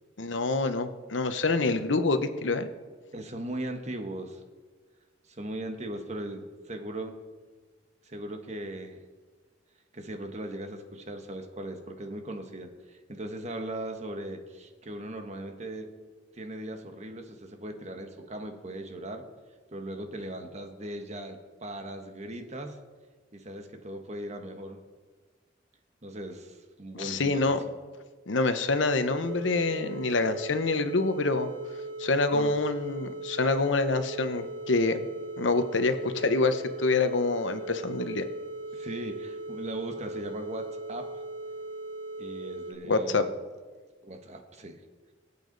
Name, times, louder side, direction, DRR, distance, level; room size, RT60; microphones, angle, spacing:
voice 1, 0.2-2.7 26.9-27.6 28.3-31.5 32.0-35.0 35.4-38.3 42.9-43.2, left 3 dB, 85° left, 9 dB, 1.0 m, -26 dB
voice 2, 3.1-4.4 5.3-7.2 8.0-9.0 9.9-15.9 16.3-19.2 19.7-22.8 23.3-24.8 26.0-27.5 32.3-32.5 38.7-41.1 42.2-43.3 44.0-44.8, right 1 dB, 35° right, 5 dB, 1.3 m, -38 dB
sound 1, 29.2-42.7, right 2 dB, 65° right, 2.6 m, -39 dB
23.0 x 8.4 x 4.0 m, 1.4 s
head